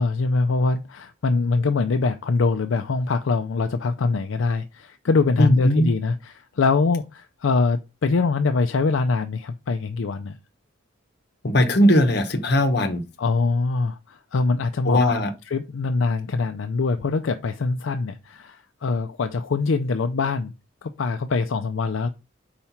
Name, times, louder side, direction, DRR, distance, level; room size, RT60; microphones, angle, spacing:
voice 1, 0.0-10.4 13.2-15.1 15.4-20.5 20.8-22.1, left 4 dB, 70° left, 0.4 m, -23 dB
voice 2, 5.4-5.9 11.4-13.0 14.9-15.3, left 1 dB, 55° left, 0.9 m, -19 dB
4.8 x 4.4 x 5.6 m
head